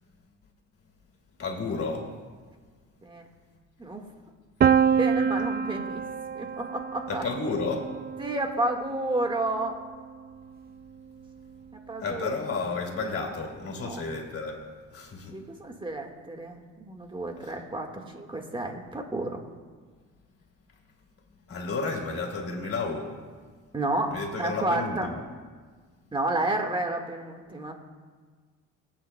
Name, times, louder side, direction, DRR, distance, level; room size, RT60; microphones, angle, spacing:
voice 1, 1.4-2.1 7.1-7.9 12.0-15.4 17.4-17.5 21.5-23.2 24.1-25.2, left 3 dB, 50° left, 2.6 m, -32 dB
Piano, 4.6-10.4, right 7 dB, 30° right, 0.4 m, -27 dB
voice 2, 4.9-6.0 6.3-7.2 8.2-9.7 11.9-12.3 13.8-14.0 15.3-19.4 23.7-25.1 26.1-27.7, right 2 dB, 15° right, 1.6 m, -31 dB
24.0 x 8.8 x 2.2 m
cardioid pair, 90°, 30 cm